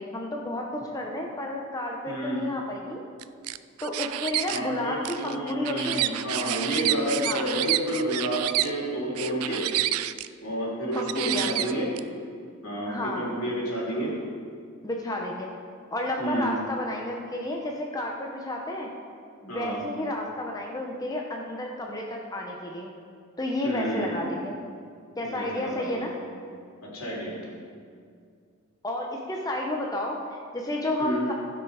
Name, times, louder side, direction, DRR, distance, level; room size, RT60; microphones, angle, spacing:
voice 1, 0.0-3.0 3.8-6.1 7.2-7.5 10.9-11.5 12.9-13.3 14.8-15.5 15.9-18.9 19.4-22.9 23.4-24.6 25.2-26.1 28.8-31.3, left 1 dB, 15° left, 0 dB, 0.8 m, -31 dB
voice 2, 2.0-2.4 4.5-9.6 10.4-11.9 12.6-14.1 16.2-16.5 19.5-19.8 23.6-24.3 25.2-26.1 26.8-27.5 31.0-31.3, equal, 75° left, -5 dB, 3.2 m, -30 dB
sound 1, 3.2-4.6 5.0-8.7 9.2-10.3 10.9-12.0, right 15 dB, 80° right, 0.3 m, -29 dB
16.0 x 6.2 x 4.9 m, 2.2 s
head